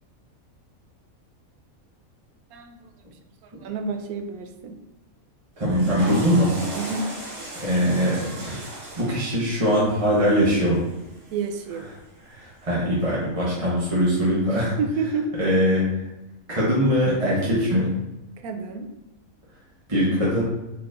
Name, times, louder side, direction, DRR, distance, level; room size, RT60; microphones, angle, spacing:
voice 1, 3.6-4.8 6.8-7.1 11.3-11.9 14.5-15.3 18.4-18.9, right 4 dB, 90° right, 6 dB, 1.1 m, -29 dB
voice 2, 5.6-6.5 7.6-8.5 9.0-10.9 12.4-14.8 15.4-15.9 16.5-17.9 19.9-20.4, equal, 25° right, -8 dB, 1.1 m, -21 dB
Water / Toilet flush, 5.6-11.8, right 2 dB, 60° right, 1.5 m, -37 dB
4.3 x 4.2 x 2.5 m, 0.96 s
omnidirectional pair, 1.5 m